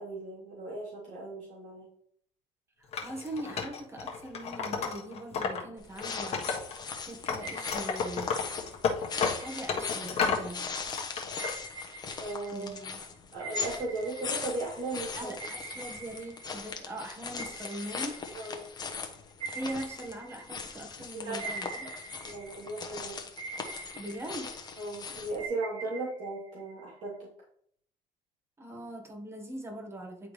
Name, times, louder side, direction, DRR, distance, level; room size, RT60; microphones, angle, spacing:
voice 1, 0.0-1.9 12.2-12.7 13.3-15.3 18.3-18.7 21.1-21.5 22.2-23.2 24.8-27.3, right 2 dB, 60° right, -6 dB, 2.9 m, -37 dB
voice 2, 2.8-6.5 7.1-8.3 9.1-10.7 12.5-13.0 15.1-18.2 19.5-21.9 23.9-24.6 28.6-30.3, right 1 dB, 20° right, 1 dB, 1.5 m, -41 dB
Wood, 2.9-5.6 5.9-6.9 7.3-10.5 10.9-11.5, left 5 dB, 45° left, 1.3 m, -32 dB
sound 1, 5.8-25.5, left 5 dB, 30° left, 1.1 m, -40 dB
sound 2, 7.4-8.7 9.4-10.6 11.3-15.0 15.4-17.0 17.4-20.9 21.4-23.0 23.4-25.0 25.4-27.1, right 4 dB, 45° right, 2.1 m, -45 dB
10.0 x 3.6 x 3.3 m, 0.67 s
cardioid pair, 120°, 14 cm